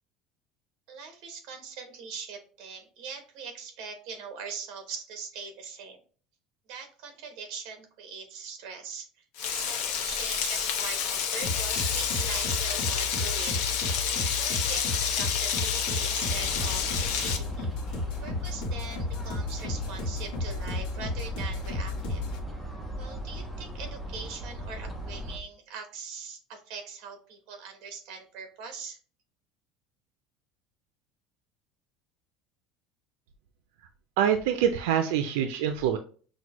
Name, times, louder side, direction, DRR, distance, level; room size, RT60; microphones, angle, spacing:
voice 1, 0.9-6.0 6.7-9.1 9.5-17.7 18.2-22.2 23.0-29.0, right 5 dB, 50° right, 6 dB, 1.0 m, -41 dB
Frying (food), 9.4-17.4, left 7 dB, 60° left, 0.6 m, -29 dB
sound 1, 11.4-22.4, left 2 dB, 90° left, 1.1 m, -33 dB
sound 2, 16.2-25.4, equal, ahead, 0.6 m, -38 dB
voice 2, 34.2-36.0, right 9 dB, 85° right, 7 dB, 0.4 m, -25 dB
6.1 x 2.1 x 3.0 m, 0.41 s
cardioid pair, 180°, 0 cm